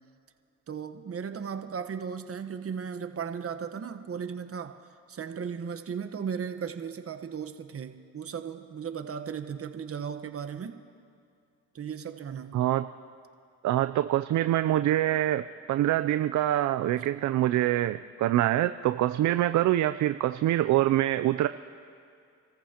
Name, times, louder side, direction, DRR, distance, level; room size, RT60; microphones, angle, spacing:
voice 1, 0.7-4.8 5.1-10.8 11.7-12.6, right 7 dB, 40° right, 8 dB, 1.2 m, -36 dB
voice 2, 12.5-12.8 13.6-15.4 15.7-21.5, right 13 dB, 55° right, 11 dB, 0.5 m, -25 dB
29.0 x 14.5 x 2.9 m, 2.4 s
supercardioid pair, 70°, 35 cm